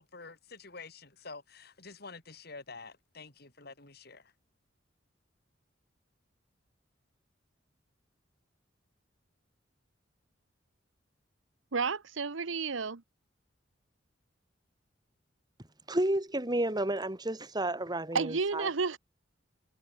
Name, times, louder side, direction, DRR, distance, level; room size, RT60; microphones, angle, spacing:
voice 1, 0.0-4.2, left 4 dB, 55° left, 4.5 m, -48 dB
voice 2, 11.7-13.0 18.1-19.0, right 4 dB, 85° right, 1.0 m, -31 dB
voice 3, 15.9-18.7, right 1 dB, 20° right, 2.3 m, -31 dB
head